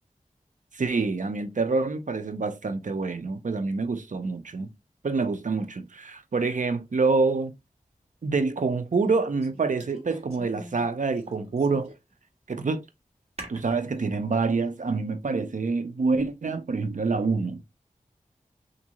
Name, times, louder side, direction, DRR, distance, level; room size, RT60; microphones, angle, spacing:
voice 1, 0.7-4.7 5.0-7.5 8.2-11.9 12.5-12.8 13.5-17.6, right 4 dB, 65° right, 0.7 m, -26 dB
sound 1, 7.3-7.4 9.0-10.9 11.2-12.1 12.5-12.6 13.4-14.0, right 1 dB, 50° right, 1.6 m, -44 dB
3.5 x 2.6 x 3.0 m
wide cardioid pair, 55°, 14 cm